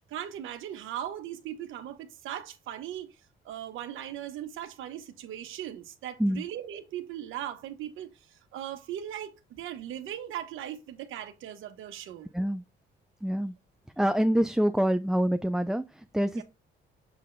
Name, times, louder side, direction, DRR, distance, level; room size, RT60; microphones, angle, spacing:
voice 1, 0.1-3.1 3.4-12.3 16.3-16.4, right 11 dB, 85° right, 1.1 m, -39 dB
voice 2, 13.2-13.5 14.0-16.4, equal, ahead, 0.4 m, -26 dB
6.8 x 5.7 x 2.6 m
cardioid pair, 90°, 20 cm